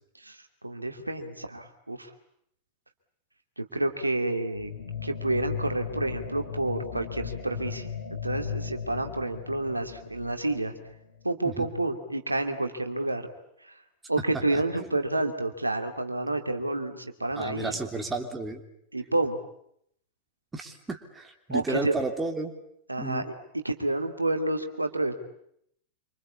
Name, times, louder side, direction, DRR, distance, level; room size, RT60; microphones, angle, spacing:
voice 1, 0.2-2.1 3.6-4.7 5.0-10.7 11.2-13.3 13.6-13.8 14.1-17.8 18.9-19.4 21.5-21.9 22.9-25.1, right 2 dB, 85° right, 6 dB, 2.4 m, -29 dB
sound 1, 4.5-11.3, left 7 dB, 70° left, 7.7 m, -37 dB
voice 2, 14.5-14.9 17.4-18.6 20.5-22.5 23.0-23.3, right 3 dB, 10° right, 3 dB, 3.1 m, -33 dB
27.0 x 25.5 x 8.6 m, 0.73 s
figure-of-eight pair, 90°, 0 cm